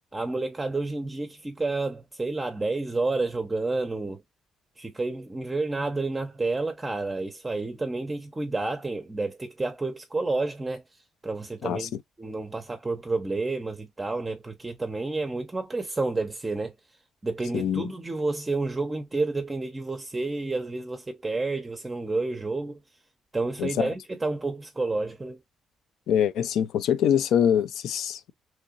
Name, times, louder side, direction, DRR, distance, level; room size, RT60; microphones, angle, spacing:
voice 1, 0.1-4.2 4.8-10.8 11.2-11.9 12.2-16.7 17.2-22.8 23.3-25.4, right 3 dB, 20° right, 0.6 m, -30 dB
voice 2, 17.5-17.9 23.6-23.9 26.1-28.3, left 9 dB, 80° left, 0.4 m, -24 dB
3.1 x 2.6 x 3.8 m
cardioid pair, 90°, 0 cm